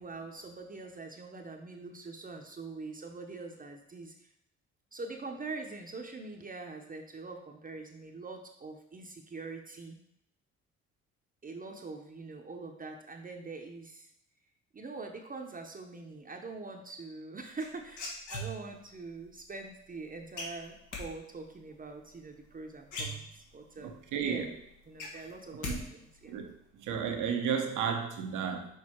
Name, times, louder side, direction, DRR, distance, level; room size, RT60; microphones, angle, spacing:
voice 1, 0.0-4.3 4.9-10.0 11.4-14.1 14.7-24.5 24.9-26.4, right 3 dB, 30° right, 3 dB, 0.7 m, -44 dB
sound 1, 17.6-18.9 20.4-21.0 22.5-22.6 22.8-23.7 24.1-24.2 24.5-25.8 26.0-26.5, left 1 dB, 85° left, 1.6 m, -39 dB
voice 2, 23.8-24.5 25.7-25.8 26.3-26.5 26.8-28.7, right 7 dB, 90° right, 4 dB, 0.9 m, -33 dB
6.4 x 3.5 x 4.4 m, 0.77 s
cardioid pair, 90°, 30 cm